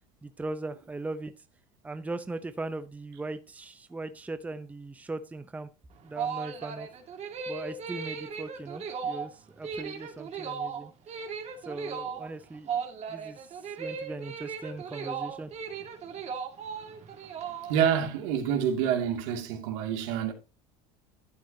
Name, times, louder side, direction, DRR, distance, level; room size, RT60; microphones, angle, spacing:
voice 1, 0.2-1.3 1.8-5.7 6.0-6.9 7.5-10.9 11.6-12.8 13.1-13.5 13.8-15.5, right 2 dB, 10° right, 0.7 m, -39 dB
sound 1, 5.9-18.0, right 6 dB, 40° right, 2.3 m, -37 dB
voice 2, 17.7-20.3, right 8 dB, 75° right, 2.5 m, -27 dB
11.5 x 8.4 x 2.8 m
supercardioid pair, 105°, 16 cm